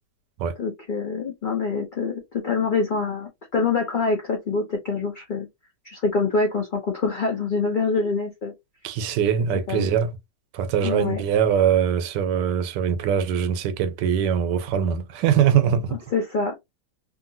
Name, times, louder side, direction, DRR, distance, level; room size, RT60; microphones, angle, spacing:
voice 1, 0.6-5.5 5.8-8.5 9.7-9.9 10.8-11.2 15.9-16.6, left 4 dB, 70° left, 0.4 m, -25 dB
voice 2, 8.8-10.1 10.5-16.0, right 8 dB, 85° right, 1.2 m, -22 dB
2.8 x 2.6 x 2.7 m
omnidirectional pair, 1.8 m